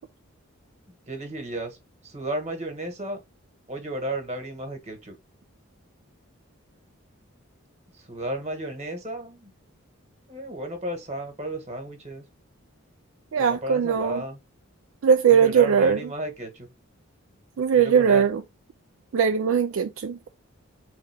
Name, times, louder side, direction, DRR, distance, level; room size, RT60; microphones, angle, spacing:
voice 1, 1.1-3.2 3.7-5.1 7.9-9.5 10.3-12.2 13.4-14.4 15.2-16.7 17.7-18.3, right 1 dB, 30° right, 1.3 m, -33 dB
voice 2, 13.3-14.2 15.0-16.0 17.6-18.4 19.1-20.2, right 7 dB, 70° right, 0.4 m, -20 dB
3.9 x 3.4 x 3.4 m
head